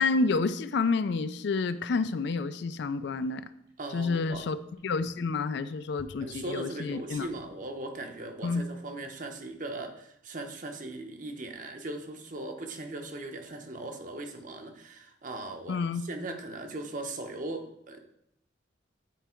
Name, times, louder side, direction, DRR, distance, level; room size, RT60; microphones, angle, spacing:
voice 1, 0.0-3.4 3.9-4.6 4.8-7.3 8.4-8.6 15.7-16.1, left 4 dB, 65° left, 13 dB, 0.4 m, -29 dB
sound 1, 3.7-3.8 4.2-4.3 4.7-5.5 5.9-8.2 8.4-8.5, left 1 dB, 75° right, 2.9 m, -53 dB
voice 2, 3.8-4.5 6.2-18.0, right 2 dB, 45° right, 5 dB, 0.9 m, -39 dB
9.0 x 4.6 x 4.4 m, 0.76 s
head